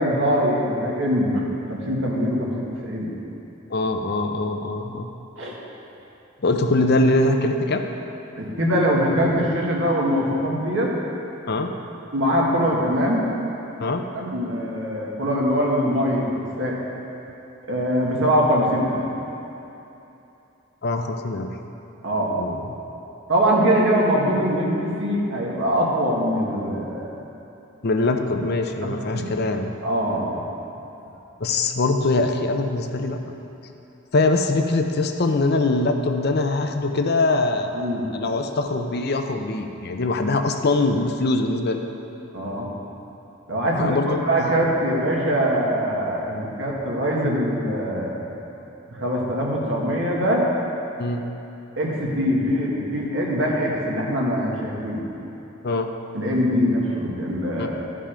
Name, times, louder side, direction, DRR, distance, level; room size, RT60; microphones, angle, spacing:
voice 1, 0.0-3.1 5.4-5.6 8.3-10.9 12.1-13.3 14.1-16.3 16.6-16.8 17.7-19.1 22.0-22.3 23.3-27.1 28.8-29.2 29.8-30.5 37.7-38.1 42.3-42.7 43.5-48.2 48.9-50.5 51.8-55.0 56.1-57.8, equal, 65° right, -3 dB, 1.7 m, -23 dB
voice 2, 3.7-5.1 6.4-7.8 11.5-11.7 13.8-14.0 20.8-21.5 22.4-22.7 27.8-29.7 31.4-33.4 34.1-41.8 43.8-44.2 51.0-51.2 55.6-55.9 57.6-57.7, left 2 dB, 50° left, 5 dB, 0.6 m, -22 dB
13.5 x 5.6 x 5.0 m, 2.9 s
head